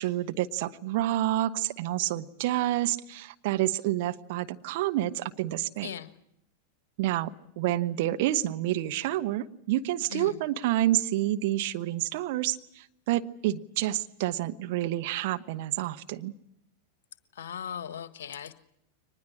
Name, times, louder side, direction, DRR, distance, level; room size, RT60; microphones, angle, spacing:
voice 1, 0.0-5.9 7.0-7.3 7.6-16.3, right 14 dB, 50° right, 8 dB, 1.1 m, -29 dB
voice 2, 10.1-10.4 17.3-18.5, left 8 dB, 60° left, 12 dB, 1.5 m, -38 dB
23.5 x 20.0 x 8.7 m, 0.77 s
figure-of-eight pair, 90°, 0 cm